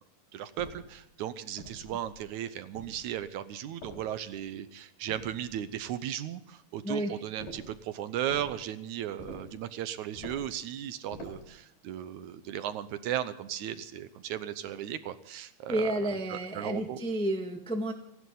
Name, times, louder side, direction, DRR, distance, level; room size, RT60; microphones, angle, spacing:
voice 1, 0.3-17.0, right 11 dB, 75° right, 13 dB, 2.1 m, -36 dB
sound 1, 0.6-1.0 1.6-2.2 2.7-3.3 3.8-4.5 5.1-5.8 7.4-7.8 8.3-8.6 9.2-9.6 10.2-10.6 11.1-11.5, left 1 dB, 90° left, 7.6 m, -46 dB
voice 2, 6.8-7.2 15.7-17.9, right 1 dB, 5° left, 4 dB, 0.6 m, -31 dB
29.0 x 11.0 x 3.9 m, 0.78 s
omnidirectional pair, 3.7 m